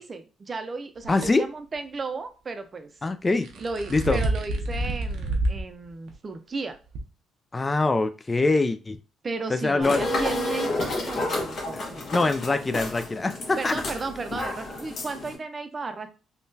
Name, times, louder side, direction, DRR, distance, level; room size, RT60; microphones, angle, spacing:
voice 1, 0.0-2.9 3.5-6.8 9.2-12.1 13.6-16.1, right 4 dB, 35° right, 0.5 m, -34 dB
sound 1, 1.0-1.3 3.3-5.6 6.1-6.2 6.9-7.0, right 2 dB, 85° right, 0.7 m, -28 dB
voice 2, 1.1-1.5 3.0-3.5 3.9-4.2 7.5-9.0 9.5-10.0 11.7-13.8, left 3 dB, 25° left, 0.3 m, -24 dB
sound 2, 9.8-15.4, left 2 dB, 55° left, 1.1 m, -30 dB
3.6 x 2.3 x 2.6 m
cardioid pair, 90°, 0 cm